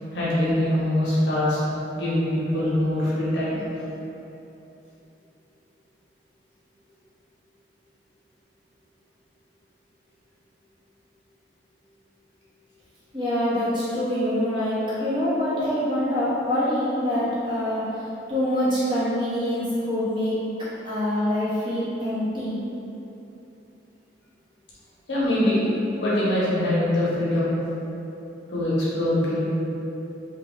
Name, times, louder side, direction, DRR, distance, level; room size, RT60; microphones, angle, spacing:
voice 1, 0.1-1.6 1.9-3.6 25.1-25.7 26.0-27.5 28.5-29.4, left 1 dB, 65° left, -8 dB, 0.8 m, -23 dB
voice 2, 13.1-17.8 18.3-20.4 20.8-22.6, left 1 dB, 25° right, -11 dB, 0.8 m, -25 dB
2.4 x 2.2 x 3.1 m, 2.9 s
head